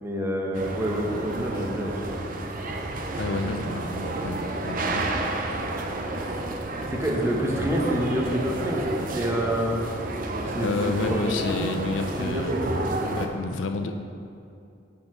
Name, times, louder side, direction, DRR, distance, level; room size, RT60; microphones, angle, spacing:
voice 1, 0.0-2.2 6.9-9.8 10.4-11.8 12.2-13.1, equal, 15° right, -1 dB, 0.9 m, -28 dB
sound 1, 0.5-13.3, right 2 dB, 45° right, 0.6 m, -31 dB
voice 2, 3.2-5.1 10.6-12.6 13.1-14.0, left 3 dB, 70° left, 7 dB, 0.5 m, -30 dB
8.5 x 4.4 x 4.7 m, 2.5 s
head